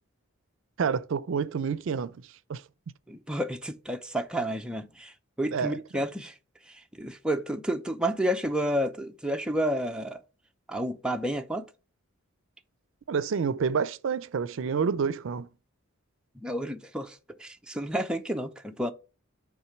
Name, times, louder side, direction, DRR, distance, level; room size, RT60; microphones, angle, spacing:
voice 1, 0.8-2.2 2.5-2.6 5.5-5.8 13.1-15.5, right 6 dB, 65° right, 0.4 m, -28 dB
voice 2, 3.1-5.1 5.4-6.3 7.0-10.2 10.7-11.6 16.4-18.9, equal, 5° right, 0.5 m, -30 dB
5.9 x 3.7 x 5.8 m
head